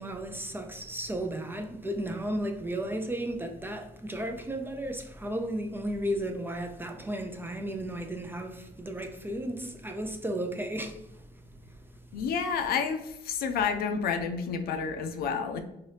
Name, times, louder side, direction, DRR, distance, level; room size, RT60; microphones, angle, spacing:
voice 1, 0.0-11.0, right 1 dB, 10° right, 0.3 m, -34 dB
voice 2, 12.1-15.6, left 6 dB, 65° left, 0.5 m, -30 dB
2.8 x 2.8 x 3.2 m
cardioid pair, 110°, 17 cm